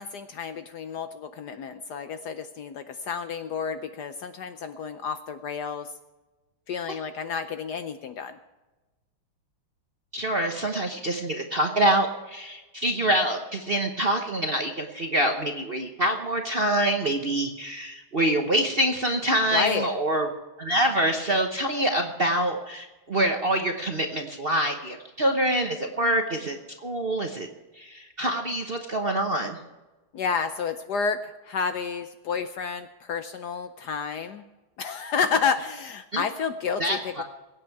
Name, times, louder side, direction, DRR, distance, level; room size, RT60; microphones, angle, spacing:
voice 1, 0.0-5.9 6.7-8.4 19.5-19.9 30.1-34.4 34.8-37.2, left 6 dB, 65° left, 9 dB, 1.1 m, -30 dB
voice 2, 10.1-20.3 20.6-27.5 27.7-29.6 36.1-36.2 36.8-37.2, right 1 dB, 40° right, 4 dB, 0.9 m, -26 dB
22.0 x 9.0 x 4.7 m, 1.1 s
omnidirectional pair, 2.3 m